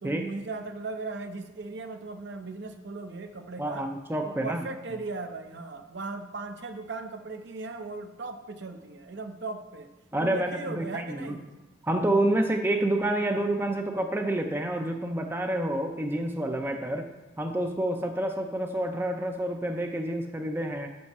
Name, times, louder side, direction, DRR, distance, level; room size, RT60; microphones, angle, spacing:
voice 1, 0.0-3.9 4.2-9.9 10.2-11.5, right 3 dB, 60° right, 6 dB, 0.7 m, -38 dB
voice 2, 3.6-4.6 10.1-11.4 11.8-17.1 17.4-21.0, right 1 dB, 10° right, 4 dB, 0.5 m, -28 dB
5.6 x 5.4 x 6.7 m, 1.2 s
head